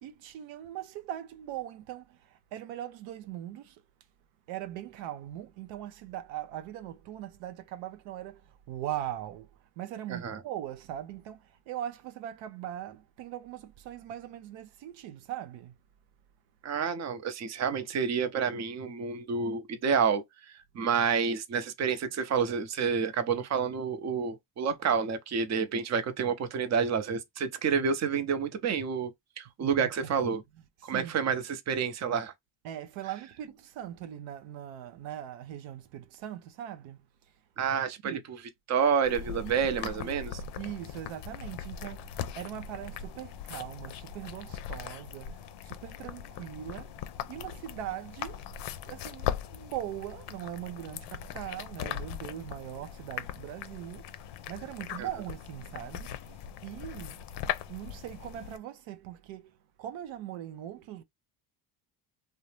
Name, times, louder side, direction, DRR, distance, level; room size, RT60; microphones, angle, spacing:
voice 1, 0.0-3.8 4.5-15.8 29.6-30.1 30.8-31.2 32.6-37.0 38.0-38.2 39.3-39.5 39.8-40.2 40.6-47.0 47.3-48.5 48.8-54.1 54.5-57.2 57.7-61.0, right 12 dB, 85° right, 0.6 m, -40 dB
voice 2, 10.1-10.4 16.6-29.1 29.4-30.4 30.8-32.3 37.6-38.4 38.7-40.4 55.0-55.1, right 6 dB, 35° right, 0.6 m, -29 dB
sound 1, 39.1-58.6, left 9 dB, 65° left, 0.5 m, -40 dB
2.6 x 2.1 x 3.1 m
cardioid pair, 95°, 45 cm